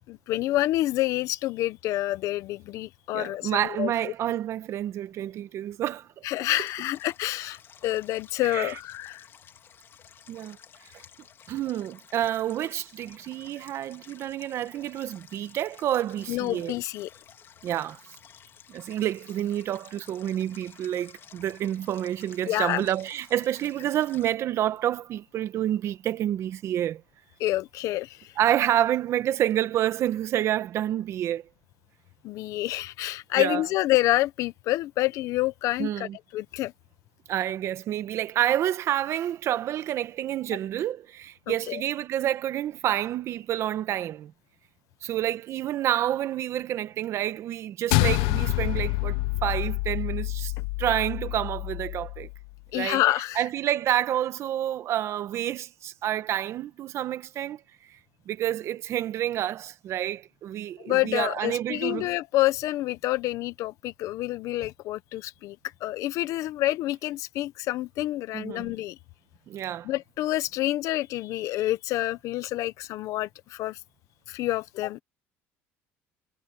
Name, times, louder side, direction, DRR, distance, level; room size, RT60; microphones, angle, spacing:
voice 1, 0.1-4.1 6.2-9.2 16.3-17.1 22.5-22.9 27.4-28.3 32.2-36.7 41.5-41.8 52.7-53.4 60.8-65.6 65.8-69.0 69.8-73.8 74.3-75.0, left 16 dB, 65° left, 1.1 m, -28 dB
voice 2, 3.1-6.1 8.5-8.7 10.3-10.6 11.5-16.7 17.6-18.0 18.7-27.0 28.4-31.4 33.4-33.6 35.8-36.2 37.3-44.3 45.0-50.5 50.8-52.3 52.7-53.0 53.3-57.6 58.3-62.1 68.3-68.7 69.5-69.9, right 12 dB, 50° right, 1.4 m, -28 dB
Stream, 6.5-24.3, left 8 dB, 40° left, 2.9 m, -53 dB
sound 1, 47.9-52.5, left 22 dB, 85° left, 0.7 m, -27 dB
cardioid pair, 115°, 6 cm